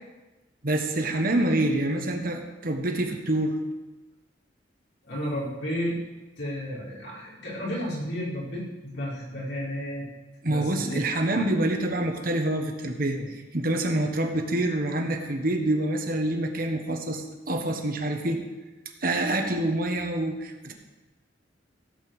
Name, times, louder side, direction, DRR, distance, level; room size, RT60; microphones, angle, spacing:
voice 1, 0.6-3.6 10.4-18.4 19.0-20.7, right 1 dB, 50° right, 4 dB, 1.3 m, -26 dB
voice 2, 5.0-6.0 6.4-10.1 10.5-11.5 13.1-13.2, equal, 75° left, -6 dB, 4.8 m, -33 dB
15.5 x 5.4 x 7.1 m, 1.1 s
head